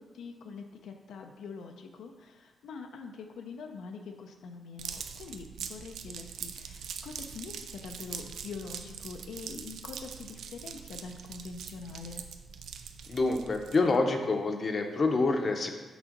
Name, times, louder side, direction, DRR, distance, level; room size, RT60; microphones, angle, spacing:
voice 1, 0.0-12.2, left 4 dB, 85° left, 4 dB, 0.5 m, -44 dB
sound 1, 4.8-14.0, right 7 dB, 85° right, 0.4 m, -43 dB
voice 2, 13.1-15.7, left 3 dB, 35° left, 4 dB, 0.6 m, -27 dB
6.1 x 3.8 x 5.1 m, 1.3 s
wide cardioid pair, 140°, 0 cm